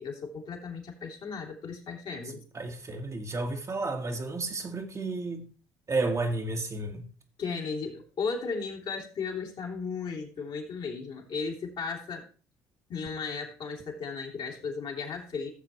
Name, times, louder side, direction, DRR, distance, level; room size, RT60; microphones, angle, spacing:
voice 1, 0.0-2.4 7.4-12.2 12.9-15.5, left 5 dB, 55° left, 2.8 m, -35 dB
voice 2, 2.5-5.5 5.9-7.1, right 3 dB, 30° right, 1.6 m, -32 dB
15.0 x 7.2 x 3.1 m
hypercardioid pair, 60°, 10 cm